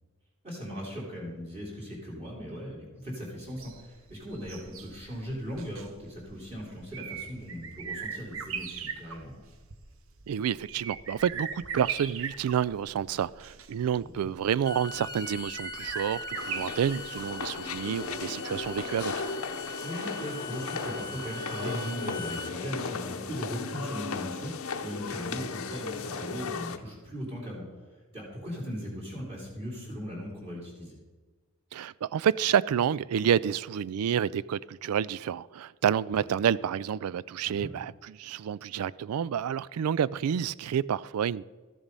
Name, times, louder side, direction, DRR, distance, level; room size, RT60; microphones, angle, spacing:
voice 1, 0.4-9.4 14.0-14.1 19.8-27.6 28.1-31.0 37.4-37.7, equal, 30° right, 3.1 m, -38 dB
sound 1, 3.5-19.4 19.7-19.8, right 7 dB, 65° right, 0.8 m, -41 dB
voice 2, 10.3-19.1 31.7-41.4, right 8 dB, 90° right, 0.3 m, -29 dB
Bowed string instrument, 14.5-22.5, left 2 dB, 20° left, 0.5 m, -42 dB
sound 2, 16.3-26.8, left 5 dB, 75° left, 0.8 m, -36 dB
13.5 x 7.2 x 5.3 m
head